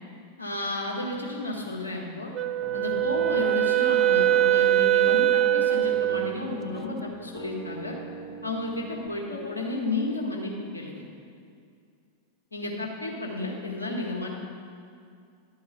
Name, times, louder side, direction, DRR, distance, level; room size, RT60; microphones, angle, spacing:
voice 1, 0.4-2.3 2.7-8.0 8.4-11.0 12.5-14.3, left 2 dB, 75° left, -1 dB, 1.6 m, -32 dB
Wind instrument woodwind instrument, 2.3-6.4, right 12 dB, 25° right, 0.4 m, -22 dB
Piano, 2.6-3.6 4.1-5.3 5.7-9.1, right 2 dB, 30° left, 1.4 m, -43 dB
11.0 x 4.7 x 8.2 m, 2.3 s
figure-of-eight pair, 90°, 0 cm